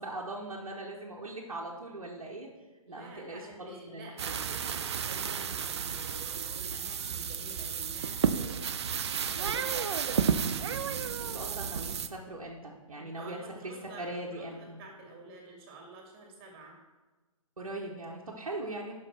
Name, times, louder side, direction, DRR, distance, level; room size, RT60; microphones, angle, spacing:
voice 1, 0.0-2.5 2.9-4.5 11.2-13.4 13.6-14.8 17.6-18.9, right 2 dB, 75° right, -2 dB, 1.0 m, -40 dB
voice 2, 2.8-8.8 9.3-10.5 13.0-16.7, right 2 dB, 25° right, 0 dB, 2.0 m, -49 dB
sound 1, 4.2-12.1, right 7 dB, 50° right, 0.4 m, -32 dB
5.8 x 5.4 x 5.8 m, 1.2 s
figure-of-eight pair, 130°, 18 cm